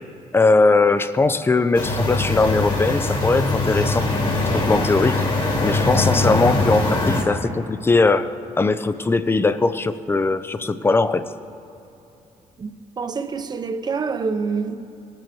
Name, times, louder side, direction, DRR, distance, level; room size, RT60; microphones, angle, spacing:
voice 1, 0.3-4.1 4.5-5.2 5.6-11.3, left 3 dB, 15° left, 0.5 m, -20 dB
sound 1, 1.7-7.2, left 2 dB, 40° left, 1.9 m, -22 dB
voice 2, 12.6-14.8, right 5 dB, 30° right, 0.8 m, -26 dB
19.0 x 7.6 x 4.6 m
cardioid pair, 115°, 13 cm